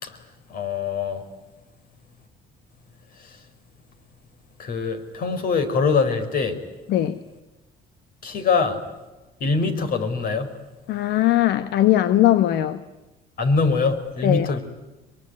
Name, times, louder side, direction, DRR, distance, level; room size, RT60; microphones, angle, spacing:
voice 1, 0.5-1.3 3.2-3.3 4.6-6.6 8.2-8.8 9.4-10.6 13.4-14.6, left 4 dB, 60° left, 9 dB, 4.6 m, -23 dB
voice 2, 6.9-7.2 10.9-12.8 14.2-14.6, left 13 dB, 80° left, 12 dB, 1.1 m, -19 dB
24.0 x 23.0 x 9.7 m, 1.1 s
cardioid pair, 110°, 17 cm